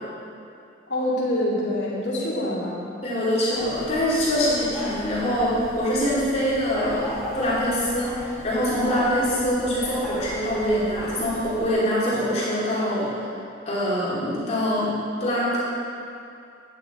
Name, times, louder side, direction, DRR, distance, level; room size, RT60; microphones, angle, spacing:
voice 1, 0.9-2.9, left 1 dB, 80° left, -7 dB, 2.2 m, -25 dB
voice 2, 3.0-13.2 13.7-15.6, equal, 35° left, -9 dB, 2.7 m, -24 dB
sound 1, 3.5-11.7, left 1 dB, ahead, 1.8 m, -37 dB
9.7 x 9.7 x 4.3 m, 2.5 s
head